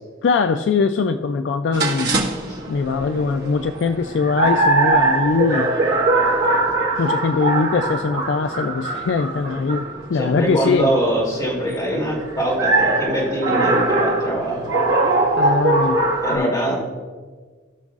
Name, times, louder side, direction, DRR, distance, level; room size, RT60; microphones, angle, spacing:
voice 1, 0.2-2.3 2.7-5.7 7.0-10.9 15.4-16.0 16.3-16.5, left 4 dB, 60° left, 9 dB, 0.3 m, -21 dB
sound 1, 1.7-16.4, right 2 dB, 50° right, 1.4 m, -22 dB
voice 2, 10.1-14.7 16.2-16.9, right 1 dB, 20° left, -6 dB, 2.8 m, -23 dB
17.5 x 6.2 x 2.4 m, 1.5 s
head